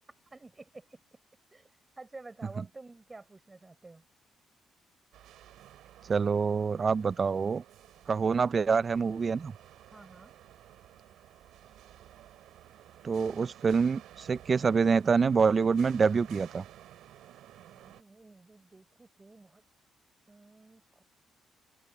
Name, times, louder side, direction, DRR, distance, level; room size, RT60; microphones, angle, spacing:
voice 1, 0.3-1.0 1.5-1.7 2.0-4.0 9.9-10.3 17.7-19.6 20.3-21.0, right 3 dB, 20° right, 4.4 m, -51 dB
sound 1, 5.1-18.0, right 13 dB, 85° right, 7.0 m, -54 dB
voice 2, 6.1-7.6 8.1-9.5 13.0-16.6, right 5 dB, 40° right, 0.4 m, -26 dB
cardioid pair, 90°, 0 cm